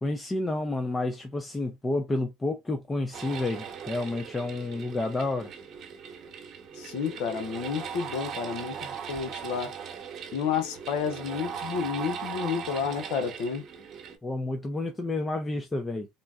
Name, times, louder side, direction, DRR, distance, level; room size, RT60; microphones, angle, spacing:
voice 1, 0.0-5.5 14.2-16.1, left 2 dB, 15° left, 0.5 m, -30 dB
sound 1, 3.1-14.2, right 7 dB, 45° right, 1.0 m, -39 dB
voice 2, 6.8-9.7 10.3-13.6, left 6 dB, 75° left, 0.8 m, -31 dB
3.7 x 2.1 x 2.4 m
supercardioid pair, 105°, 0 cm